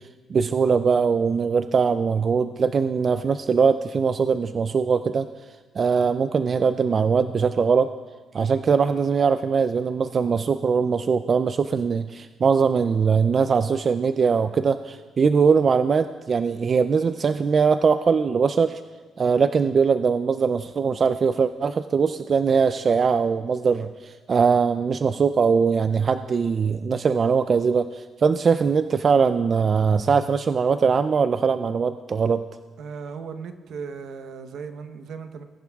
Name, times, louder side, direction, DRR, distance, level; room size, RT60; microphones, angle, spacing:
voice 1, 0.3-5.3 5.8-7.9 8.3-18.8 19.2-32.4, right 5 dB, 45° right, 11 dB, 0.3 m, -21 dB
voice 2, 32.8-35.4, right 5 dB, 75° right, 8 dB, 0.9 m, -36 dB
20.0 x 11.0 x 2.3 m, 1.4 s
cardioid pair, 90°, 0 cm